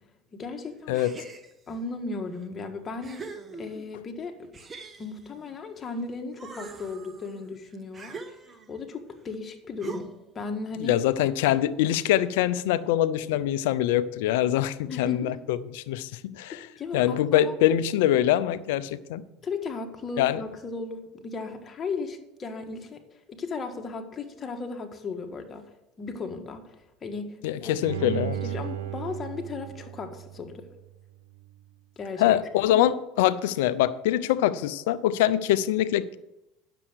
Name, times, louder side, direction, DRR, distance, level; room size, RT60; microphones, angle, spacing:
voice 1, 0.3-1.0 1.7-3.3 3.6-4.5 5.0-8.4 8.7-11.0 14.9-15.4 16.5-17.5 19.4-25.7 26.0-27.7 28.0-30.7 32.0-32.4 32.7-32.9, left 4 dB, 35° left, 5 dB, 1.7 m, -36 dB
sound 1, 0.9-1.8 2.4-2.5 3.0-4.0 4.5-6.0 6.3-8.8 9.8-10.4, right 4 dB, 25° right, 1.2 m, -42 dB
voice 2, 10.8-16.6 16.9-19.3 20.2-20.4 27.4-28.4 32.2-36.2, left 12 dB, 80° left, 17 dB, 0.6 m, -24 dB
Bowed string instrument, 27.8-30.9 31.4-31.5, right 10 dB, 90° right, 1.3 m, -35 dB
9.9 x 6.9 x 6.3 m, 0.94 s
supercardioid pair, 90°, 0 cm